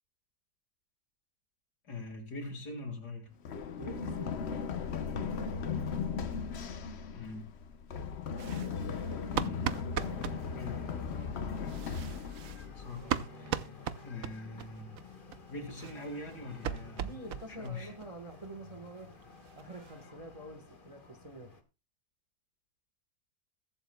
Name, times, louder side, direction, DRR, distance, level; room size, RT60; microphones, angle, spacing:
voice 1, 1.9-3.3 7.1-7.5 8.4-8.7 9.3-9.9 10.5-10.8 12.7-13.7 14.0-15.0 15.5-17.9, left 2 dB, 80° left, 2.5 m, -43 dB
Run, 3.4-13.2, left 6 dB, 50° left, 0.9 m, -37 dB
voice 2, 3.8-4.4 17.0-19.2 19.6-21.5, right 1 dB, 25° right, 1.1 m, -47 dB
sound 1, 8.4-10.4 11.6-14.7 15.0-15.1 15.3-15.4 15.7-17.8 18.0-18.1 18.4-18.5 18.9-19.0 19.2-20.0, right 10 dB, 65° right, 1.0 m, -38 dB
sound 2, 10.0-21.6, left 3 dB, 30° left, 1.6 m, -51 dB
21.5 x 8.0 x 2.2 m
omnidirectional pair, 1.7 m